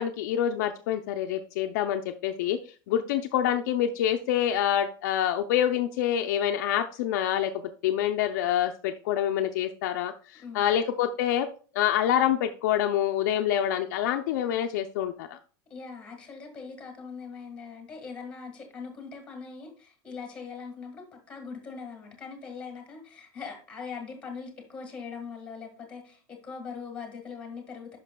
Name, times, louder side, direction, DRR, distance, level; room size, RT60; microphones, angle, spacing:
voice 1, 0.0-2.6 2.9-11.5 11.7-15.4, left 10 dB, 55° left, 5 dB, 0.5 m, -26 dB
voice 2, 10.3-10.7 15.7-28.0, left 5 dB, 10° left, 4 dB, 1.6 m, -41 dB
9.9 x 5.9 x 2.2 m, 0.39 s
supercardioid pair, 180°, 11 cm